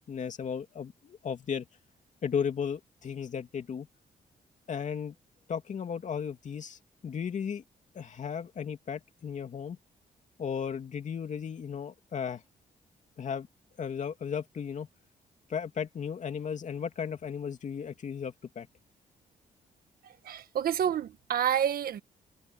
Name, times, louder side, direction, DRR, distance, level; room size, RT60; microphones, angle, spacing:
voice 1, 0.0-1.6 2.2-3.9 4.7-5.1 5.5-7.6 7.9-9.8 10.4-12.4 13.2-13.5 13.8-14.9 15.5-18.7, left 7 dB, 50° left, 2.8 m, -35 dB
voice 2, 20.0-22.0, right 9 dB, 75° right, 1.6 m, -29 dB
cardioid pair, 110°, 15 cm